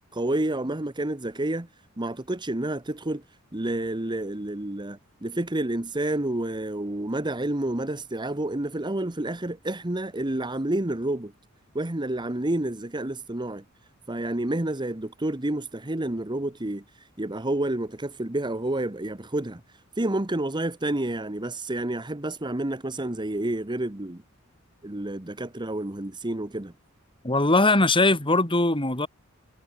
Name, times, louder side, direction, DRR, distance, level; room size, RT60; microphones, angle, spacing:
voice 1, 0.1-1.7 2.0-3.2 3.5-11.3 11.7-13.6 14.1-16.8 17.2-19.6 20.0-24.2 24.8-26.7, right 1 dB, 20° right, 1.2 m, -29 dB
voice 2, 27.2-29.1, left 2 dB, 25° left, 4.2 m, -21 dB
head